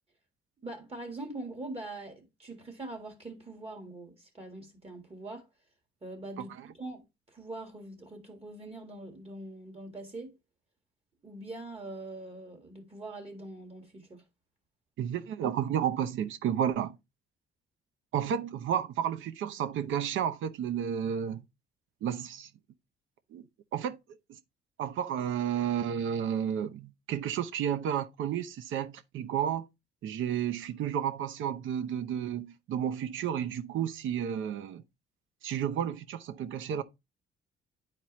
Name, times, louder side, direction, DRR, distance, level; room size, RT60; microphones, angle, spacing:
voice 1, 0.6-5.5 6.0-10.3 11.2-14.2, right 2 dB, 30° right, 1.8 m, -43 dB
voice 2, 15.0-17.0 18.1-21.4 22.0-22.5 23.3-23.4 23.7-24.0 24.8-29.7 30.0-34.8 35.4-36.8, right 9 dB, 80° right, 0.8 m, -31 dB
9.9 x 4.5 x 3.0 m
cardioid pair, 90°, 20 cm